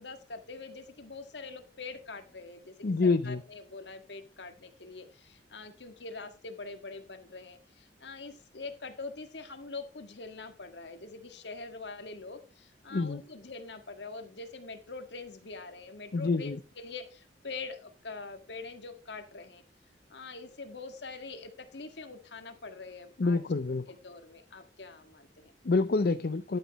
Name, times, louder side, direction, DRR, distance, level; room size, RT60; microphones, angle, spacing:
voice 1, 0.0-19.6 20.1-23.4 23.9-25.5, left 3 dB, 75° left, 7 dB, 1.8 m, -44 dB
voice 2, 2.8-3.4 12.9-13.2 16.1-16.6 23.2-23.9 25.6-26.6, left 3 dB, 60° left, 10 dB, 0.5 m, -27 dB
11.5 x 9.0 x 3.1 m, 0.32 s
head